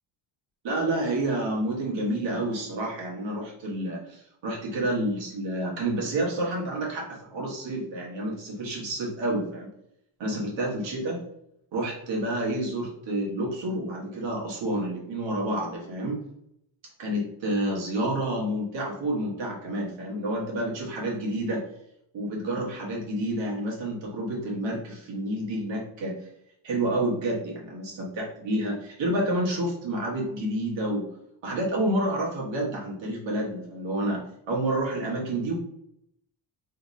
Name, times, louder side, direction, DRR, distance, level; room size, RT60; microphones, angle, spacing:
voice 1, 0.6-9.7 10.2-11.2 11.7-16.2 17.0-21.6 22.1-26.3 26.6-31.1 31.4-34.2 34.5-35.5, right 1 dB, 75° right, -3 dB, 1.4 m, -29 dB
3.4 x 3.1 x 2.7 m, 0.75 s
cardioid pair, 140°, 46 cm